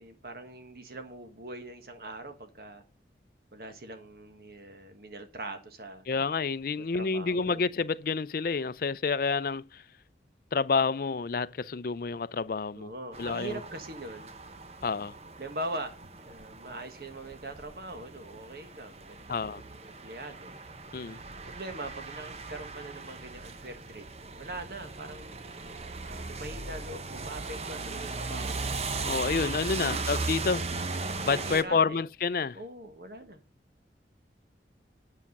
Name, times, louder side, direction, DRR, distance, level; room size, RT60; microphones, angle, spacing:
voice 1, 0.0-2.8 3.5-6.0 6.9-7.6 12.7-14.3 15.4-15.9 16.2-20.5 21.4-25.4 26.0-28.8 29.8-30.1 31.2-32.0 32.5-33.4, right 2 dB, 55° right, 1.4 m, -42 dB
voice 2, 6.1-9.8 10.5-12.9 13.2-13.6 14.8-15.2 19.3-19.6 20.9-21.2 29.0-30.7 31.2-32.6, left 4 dB, 50° left, 0.4 m, -29 dB
sound 1, 13.1-31.6, right 3 dB, 35° right, 0.9 m, -38 dB
9.7 x 7.2 x 5.3 m
head